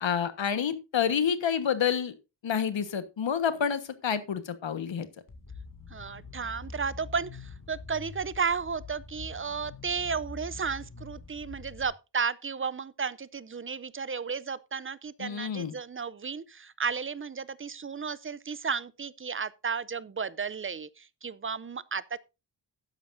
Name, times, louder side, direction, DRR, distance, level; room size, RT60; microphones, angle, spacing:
voice 1, 0.0-2.1 2.4-5.1 15.2-15.7, left 7 dB, 80° left, 1.4 m, -28 dB
sound 1, 5.3-11.8, left 4 dB, 45° left, 2.4 m, -45 dB
voice 2, 5.9-22.2, right 5 dB, 30° right, 0.5 m, -33 dB
12.5 x 10.5 x 2.6 m
wide cardioid pair, 160°, 45 cm